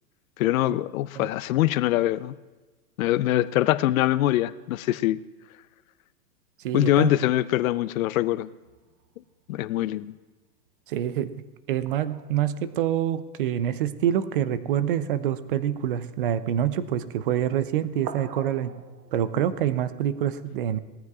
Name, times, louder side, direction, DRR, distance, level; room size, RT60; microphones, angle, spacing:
voice 1, 0.4-2.4 3.0-5.2 6.7-8.5 9.5-10.1, left 14 dB, 60° left, 0.6 m, -23 dB
voice 2, 6.6-7.1 10.9-11.3 11.7-18.7 19.1-20.8, right 10 dB, 35° right, 0.5 m, -26 dB
sound 1, 8.6-9.8 11.9-14.1 15.0-15.1 15.4-16.2 17.1-17.5 17.8-19.6, right 7 dB, 85° right, 1.2 m, -45 dB
20.0 x 14.0 x 2.4 m
hypercardioid pair, 150°, 48 cm